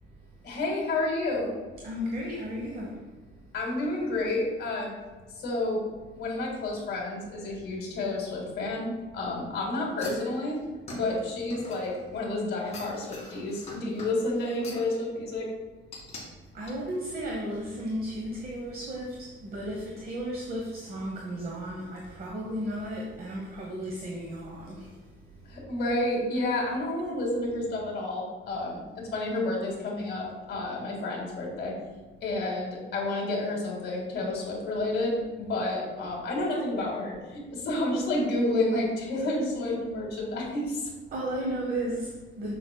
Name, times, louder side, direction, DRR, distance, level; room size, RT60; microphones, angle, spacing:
voice 1, 0.4-1.5 3.5-4.9 5.4-5.8 6.1-10.6 10.9-15.5 25.5-31.8 32.2-40.9, left 2 dB, 55° left, -2 dB, 2.0 m, -30 dB
voice 2, 1.8-3.1 16.5-25.0 25.3-25.6 41.1-42.5, equal, 45° right, -2 dB, 1.0 m, -34 dB
sound 1, 10.0-12.2 12.6-14.9 15.9-16.2 16.7-16.8, left 2 dB, 30° left, 1.8 m, -44 dB
7.6 x 6.7 x 2.3 m, 1.3 s
cardioid pair, 175°, 21 cm